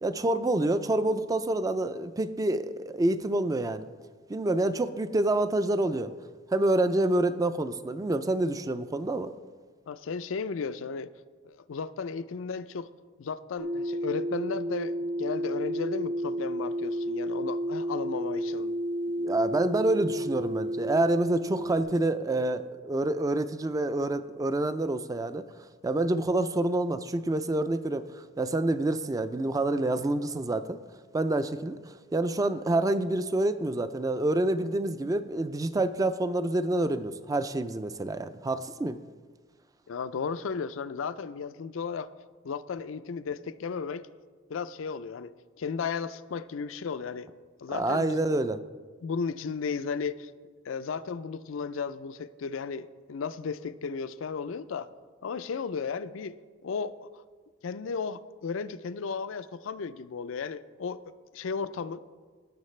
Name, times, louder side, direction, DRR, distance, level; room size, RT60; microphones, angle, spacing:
voice 1, 0.0-3.9 4.3-6.1 6.5-9.3 19.2-25.4 25.8-28.1 28.4-30.8 31.1-31.8 32.1-39.0 47.7-48.6, right 2 dB, 20° right, 0.3 m, -27 dB
voice 2, 9.9-11.1 11.4-12.9 13.2-18.7 39.9-42.1 42.4-44.1 44.5-47.3 47.6-48.3 49.0-50.3 50.7-54.9 55.2-56.4 56.6-57.1 57.6-61.0 61.3-62.0, left 5 dB, 80° left, 0.4 m, -34 dB
sound 1, 13.6-21.8, equal, 65° right, 1.2 m, -31 dB
17.0 x 6.5 x 3.2 m
head